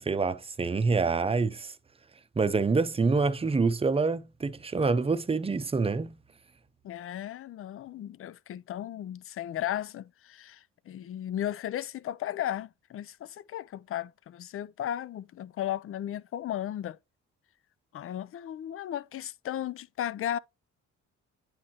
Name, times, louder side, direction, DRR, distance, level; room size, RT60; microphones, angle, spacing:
voice 1, 0.0-1.7 2.4-6.1, right 4 dB, 20° right, 0.7 m, -26 dB
voice 2, 6.8-17.0 17.9-20.4, left 11 dB, 45° left, 0.4 m, -35 dB
9.7 x 4.2 x 2.9 m
cardioid pair, 90°, 30 cm